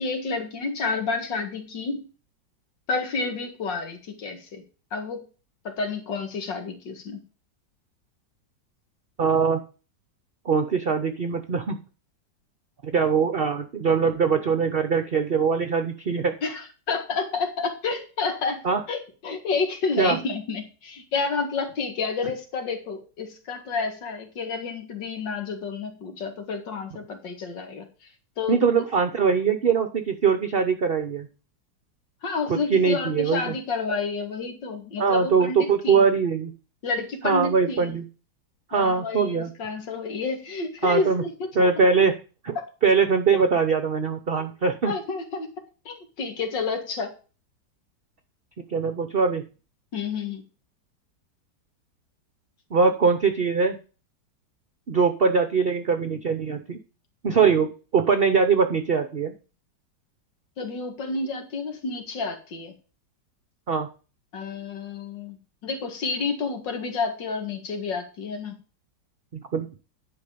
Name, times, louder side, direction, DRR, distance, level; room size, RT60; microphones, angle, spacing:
voice 1, 0.0-2.1 2.9-4.6 4.9-5.2 5.6-7.2 16.4-18.6 18.9-27.9 28.4-28.8 32.2-36.0 36.8-38.0 38.7-41.5 42.6-42.7 44.9-45.5 45.9-47.1 49.9-50.4 60.6-62.7 64.3-65.4 65.6-68.6, left 4 dB, 75° left, 6 dB, 2.5 m, -30 dB
voice 2, 9.2-9.6 10.4-11.8 12.8-16.3 18.6-18.8 20.0-20.2 28.5-31.3 32.5-33.5 35.0-36.5 37.2-38.0 38.7-39.5 40.8-41.2 41.5-42.1 42.4-42.6 42.8-44.9 48.7-49.4 52.7-53.8 54.9-56.8 57.2-59.3 63.7-63.9 69.3-69.7, right 5 dB, 45° right, 8 dB, 0.7 m, -22 dB
10.5 x 5.0 x 6.8 m, 0.35 s
omnidirectional pair, 2.0 m